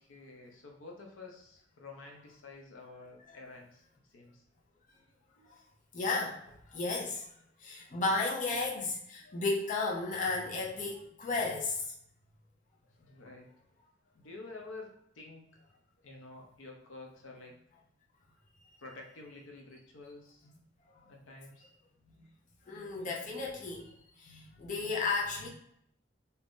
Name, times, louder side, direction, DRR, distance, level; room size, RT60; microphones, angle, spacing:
voice 1, 0.0-4.4 13.0-13.5 14.1-15.4 16.0-17.5 18.8-20.5 21.0-21.7, left 3 dB, 90° left, 1 dB, 0.7 m, -50 dB
voice 2, 5.9-6.4 6.7-7.3 7.6-11.8 22.7-23.9 24.2-25.5, left 3 dB, 40° left, -3 dB, 0.6 m, -33 dB
2.8 x 2.5 x 3.5 m, 0.73 s
head